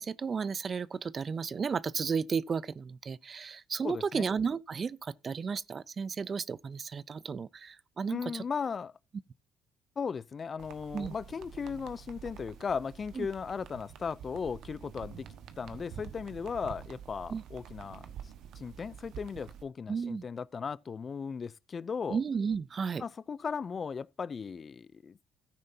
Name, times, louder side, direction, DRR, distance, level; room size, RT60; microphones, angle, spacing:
voice 1, 0.0-8.4 10.9-11.1 13.2-13.3 17.3-17.4 19.9-20.2 22.1-23.0, right 5 dB, 40° right, 0.4 m, -33 dB
voice 2, 3.8-4.3 8.1-8.9 10.0-15.3 15.6-18.1 18.6-22.2 23.0-25.2, left 6 dB, 40° left, 0.4 m, -37 dB
sound 1, 10.6-19.6, right 8 dB, 75° right, 1.3 m, -48 dB
13.5 x 9.4 x 2.7 m
cardioid pair, 90°, 0 cm